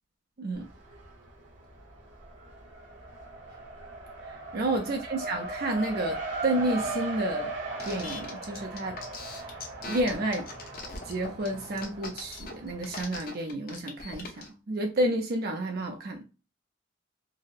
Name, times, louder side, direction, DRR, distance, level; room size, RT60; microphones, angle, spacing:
Race car auto racing, 0.5-1.3 1.6-13.0, right 2 dB, 75° right, 1.2 m, -39 dB
voice 1, 4.3-7.5 7.9-9.0 9.3-9.4 9.8-10.5 11.0-16.2, right 1 dB, 55° right, 0.5 m, -30 dB
sound 1, 7.8-14.5, left 4 dB, 50° left, 0.9 m, -40 dB
4.0 x 2.1 x 2.5 m
head